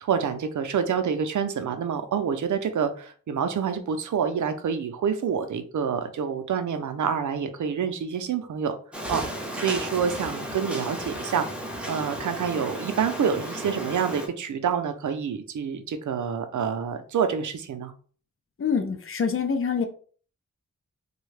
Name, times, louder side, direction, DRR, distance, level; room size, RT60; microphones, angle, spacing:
voice 1, 0.0-8.8 9.1-9.2 9.5-11.5 11.8-17.9, right 7 dB, 75° right, 8 dB, 0.5 m, -27 dB
sound 1, 8.9-14.3, equal, 5° right, 0.7 m, -34 dB
voice 2, 18.6-19.8, left 6 dB, 45° left, 7 dB, 0.5 m, -25 dB
3.5 x 2.3 x 3.2 m, 0.43 s
wide cardioid pair, 90°, 30 cm